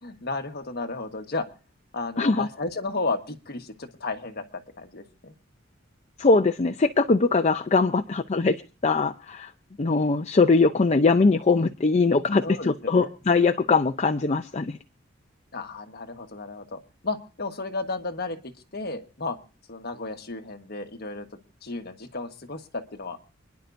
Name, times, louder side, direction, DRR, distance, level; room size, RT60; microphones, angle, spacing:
voice 1, 0.0-1.4 1.9-5.3 12.4-13.1 15.5-19.4 19.7-23.2, left 3 dB, 55° left, 5 dB, 1.5 m, -33 dB
voice 2, 2.2-2.5 6.2-8.6 8.8-9.5 9.8-14.8, left 3 dB, 35° left, 6 dB, 0.5 m, -21 dB
28.0 x 10.5 x 2.6 m, 0.35 s
head